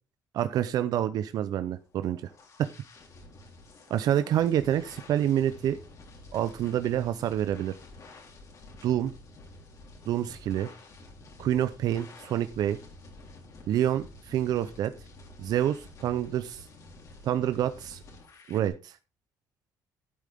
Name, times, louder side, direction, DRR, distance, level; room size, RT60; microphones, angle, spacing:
voice 1, 0.3-2.2 2.6-2.7 3.9-5.8 6.3-7.7 8.8-9.1 10.1-10.7 11.4-12.8 13.7-14.9 15.4-16.6 17.2-18.0 18.5-18.9, right 11 dB, 70° right, 12 dB, 0.7 m, -27 dB
sound 1, 1.7-18.7, left 2 dB, 50° left, 3.5 m, -50 dB
12.0 x 8.4 x 3.6 m, 0.30 s
cardioid pair, 100°, 7 cm